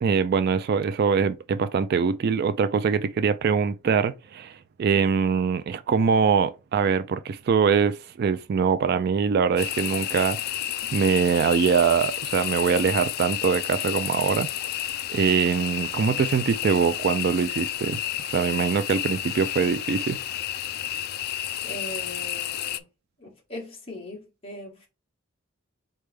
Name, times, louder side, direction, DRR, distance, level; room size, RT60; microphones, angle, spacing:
voice 1, 0.0-10.6 10.9-14.5 15.1-18.0 18.3-20.2, right 6 dB, 50° right, 0.3 m, -23 dB
sound 1, 9.6-22.8, left 12 dB, 50° left, 0.3 m, -31 dB
voice 2, 21.6-22.8 23.2-24.9, left 1 dB, 25° left, 1.7 m, -39 dB
4.1 x 3.3 x 3.3 m
head